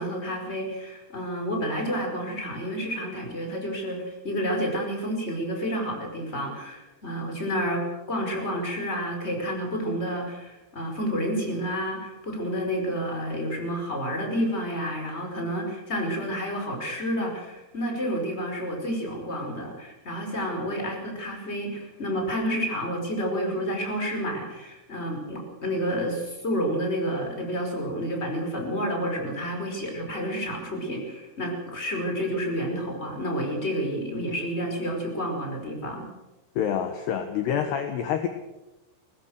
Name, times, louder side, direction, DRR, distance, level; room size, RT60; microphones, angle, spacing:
voice 1, 0.0-36.1, equal, 15° left, 3 dB, 4.9 m, -30 dB
voice 2, 36.6-38.3, left 8 dB, 70° left, 7 dB, 3.0 m, -27 dB
23.5 x 19.5 x 6.6 m, 1.0 s
omnidirectional pair, 5.6 m